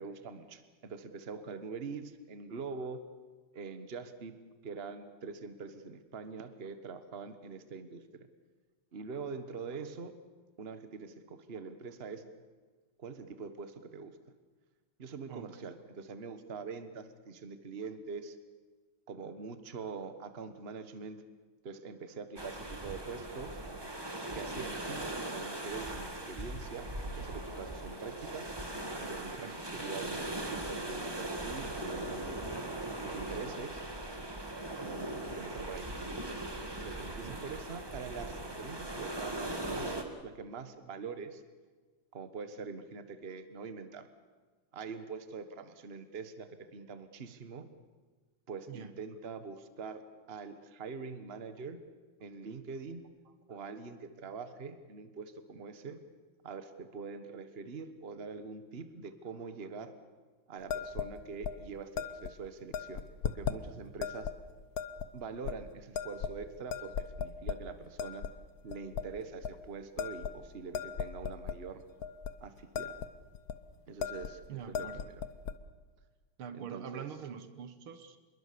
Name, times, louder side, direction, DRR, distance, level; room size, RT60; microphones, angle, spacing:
voice 1, 0.0-3.0 3.5-4.3 4.6-8.3 8.9-10.1 10.6-12.2 13.0-14.2 15.0-18.4 19.1-21.2 21.6-23.6 24.3-25.0 25.3-28.5 29.0-32.3 33.0-33.8 34.8-35.9 36.8-39.9 40.2-41.4 42.1-44.1 44.7-47.7 48.5-50.0 50.3-51.8 52.2-53.0 53.5-56.0 56.4-59.9 60.5-64.3 65.1-68.2 68.6-71.8 72.4-72.9 73.9-75.3 76.5-77.1, right 5 dB, 30° right, 10 dB, 1.4 m, -44 dB
voice 2, 15.3-15.7 29.4-29.6 37.2-37.4 48.7-48.9 74.5-75.1 76.4-78.2, right 8 dB, 75° right, 11 dB, 2.1 m, -44 dB
sound 1, 22.4-40.0, right 1 dB, 10° right, 1.8 m, -39 dB
sound 2, 60.7-61.1 61.4-61.6 62.0-62.3 62.7-63.6 64.0-64.3 64.8-65.1 65.4-65.5 65.9-66.4 66.7-67.6 68.0-68.3 68.7-69.1 69.4-69.6 70.0-71.6 72.0-72.3 72.6-73.1 73.3-73.6 74.0-74.3 74.6-75.6, left 7 dB, 55° left, 1.2 m, -37 dB
26.0 x 22.0 x 6.9 m, 1.4 s
omnidirectional pair, 2.4 m